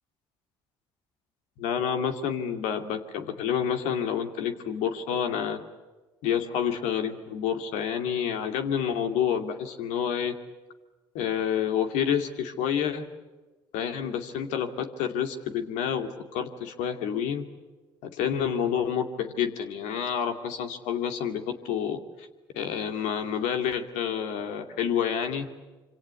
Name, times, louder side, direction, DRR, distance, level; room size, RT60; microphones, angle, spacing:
voice 1, 1.6-5.6 6.2-10.3 11.1-13.1 13.7-17.4 18.0-22.3 22.5-25.5, left 8 dB, 75° left, 7 dB, 2.4 m, -29 dB
26.5 x 26.0 x 8.3 m, 1.2 s
hypercardioid pair, 55°, 12 cm